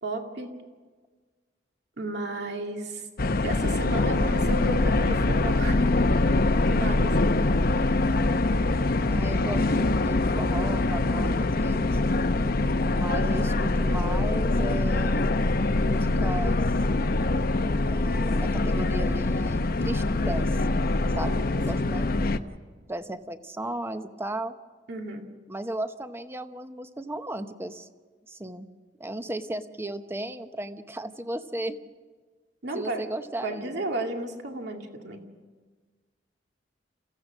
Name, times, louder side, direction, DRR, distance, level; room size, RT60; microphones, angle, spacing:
voice 1, 0.0-0.5 2.0-3.1 3.4-5.9 6.6-7.4 21.2-21.8 24.9-25.3 32.6-33.0 33.4-35.2, right 1 dB, 65° right, 3 dB, 2.2 m, -33 dB
sound 1, 3.2-22.4, left 2 dB, 55° left, 0.8 m, -24 dB
voice 2, 9.1-12.0 12.8-15.3 15.7-16.6 17.9-20.6 21.1-22.1 22.9-24.5 25.5-27.9 28.3-28.7 29.0-31.8 32.7-33.8, right 1 dB, 15° right, 10 dB, 0.8 m, -35 dB
28.5 x 15.5 x 6.2 m, 1.4 s
head